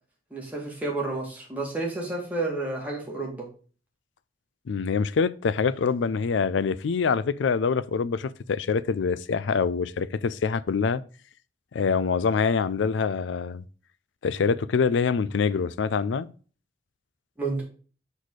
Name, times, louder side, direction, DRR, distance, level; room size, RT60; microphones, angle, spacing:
voice 1, 0.3-3.5 17.4-17.6, right 2 dB, 10° right, 2.1 m, -30 dB
voice 2, 4.7-11.0 11.7-13.6 14.2-16.3, left 5 dB, 80° left, 0.4 m, -25 dB
6.3 x 4.2 x 4.7 m
head